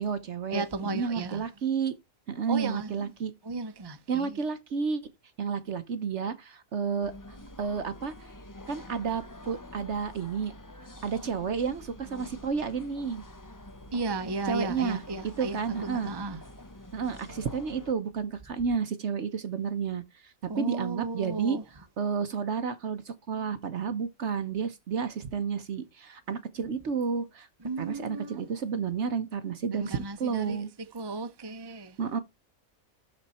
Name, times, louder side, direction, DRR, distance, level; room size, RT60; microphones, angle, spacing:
voice 1, 0.0-1.9 2.3-3.3 4.1-5.0 5.4-7.1 7.6-8.1 8.7-10.5 11.0-13.2 14.4-16.1 16.9-21.6 22.0-27.5 27.8-30.7 32.0-32.2, right 6 dB, 55° right, 1.1 m, -31 dB
voice 2, 0.5-1.4 2.5-3.1 3.4-4.4 13.9-16.4 20.5-21.6 27.6-28.4 29.7-30.6 30.9-32.0, right 3 dB, 20° right, 0.8 m, -34 dB
sound 1, 7.0-17.9, left 1 dB, 20° left, 0.6 m, -47 dB
12.5 x 4.4 x 4.2 m
omnidirectional pair, 1.5 m